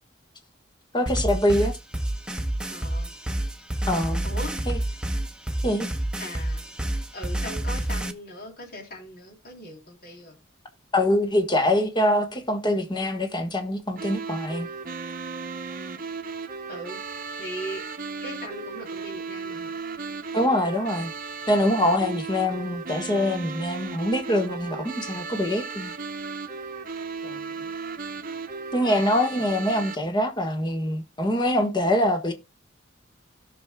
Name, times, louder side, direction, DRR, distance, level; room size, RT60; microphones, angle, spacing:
voice 1, 0.9-1.8 3.9-4.2 4.7-4.8 5.6-5.9 10.9-14.7 20.3-21.1 21.5-25.9 28.7-32.3, left 1 dB, 25° left, 1.4 m, -24 dB
sound 1, 1.1-8.1, right 1 dB, 5° right, 0.9 m, -28 dB
voice 2, 2.7-3.1 4.2-4.6 6.2-6.6 7.1-10.4 16.7-17.0 17.4-17.8 18.2-19.7 27.2-27.7, equal, 50° left, 3.5 m, -39 dB
sound 2, 14.0-30.0, right 4 dB, 45° right, 0.8 m, -35 dB
17.0 x 6.2 x 2.3 m
head